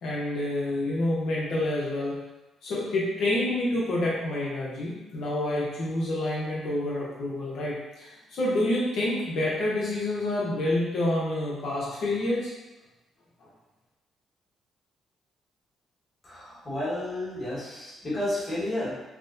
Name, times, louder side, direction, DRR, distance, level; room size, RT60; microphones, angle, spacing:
voice 1, 0.0-2.2 2.6-12.5 13.4-13.5, left 1 dB, 70° left, -6 dB, 0.9 m, -28 dB
voice 2, 16.2-18.9, left 1 dB, 30° left, -6 dB, 1.4 m, -31 dB
5.9 x 2.2 x 2.7 m, 1.1 s
cardioid pair, 90°, 0 cm